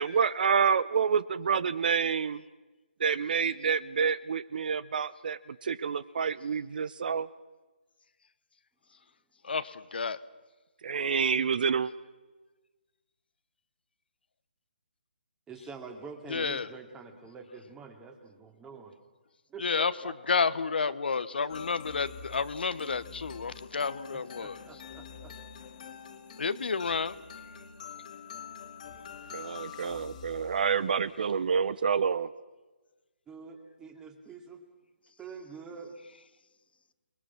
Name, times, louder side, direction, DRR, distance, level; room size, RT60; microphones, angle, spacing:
voice 1, 0.0-2.4 3.0-7.3 10.8-11.9 29.3-32.3, right 6 dB, 55° right, 18 dB, 0.8 m, -28 dB
voice 2, 9.4-10.2 16.3-16.7 19.6-24.6 26.4-27.2, left 5 dB, 65° left, 14 dB, 1.1 m, -30 dB
voice 3, 15.5-18.9 19.5-20.9 21.3-21.5 24.1-25.4 33.3-34.6 35.2-35.9, right 5 dB, 10° right, 5 dB, 2.5 m, -46 dB
sound 1, 21.5-31.2, left 7 dB, 40° left, 2.3 m, -46 dB
29.0 x 21.0 x 6.1 m, 1.2 s
figure-of-eight pair, 145°, 6 cm